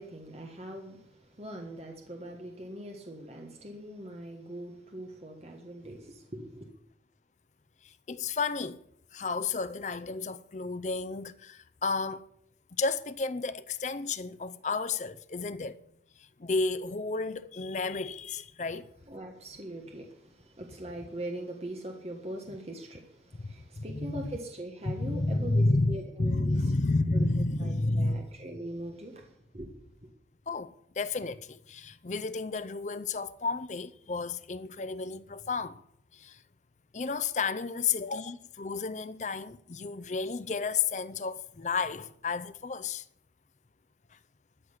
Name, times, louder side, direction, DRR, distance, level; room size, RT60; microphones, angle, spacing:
voice 1, 0.0-6.7 19.1-26.7 27.1-27.3 27.6-29.7, right 1 dB, 35° right, 1.5 m, -42 dB
voice 2, 7.8-8.8 9.1-12.2 12.8-15.8 16.4-18.9 23.4-24.3 24.9-28.3 30.5-35.8 36.1-36.4 36.9-43.0, left 3 dB, 40° left, 0.5 m, -31 dB
13.5 x 6.4 x 9.8 m
head